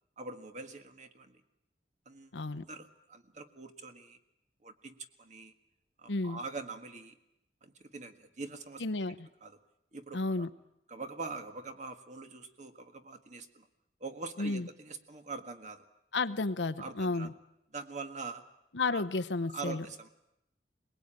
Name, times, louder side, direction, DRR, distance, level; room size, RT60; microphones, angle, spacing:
voice 1, 0.2-1.4 2.0-4.2 4.6-5.5 6.0-7.2 7.6-8.8 9.4-9.6 9.9-10.5 10.9-13.7 14.0-15.8 16.8-17.3 17.7-18.4 18.9-19.1 19.5-20.1, right 4 dB, 45° right, 8 dB, 1.6 m, -44 dB
voice 2, 2.3-2.7 6.1-6.4 8.8-9.3 10.1-10.5 14.4-14.7 16.1-17.3 18.7-19.8, left 3 dB, 90° left, 10 dB, 0.9 m, -32 dB
22.0 x 20.5 x 8.9 m, 0.84 s
head